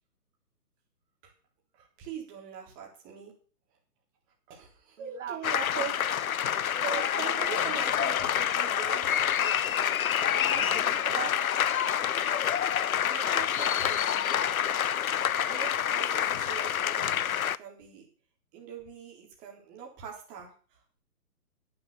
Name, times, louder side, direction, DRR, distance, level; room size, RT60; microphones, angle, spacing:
voice 1, 1.7-3.3 4.5-6.4 6.8-11.3 12.5-14.8 15.4-18.1 18.5-21.0, right 7 dB, 20° right, 3.8 m, -43 dB
voice 2, 5.0-5.9 6.9-7.3 10.4-12.9, right 9 dB, 50° right, 1.4 m, -44 dB
sound 1, 5.4-17.6, left 9 dB, 60° left, 0.7 m, -27 dB
11.0 x 10.5 x 7.0 m
hypercardioid pair, 155°, 47 cm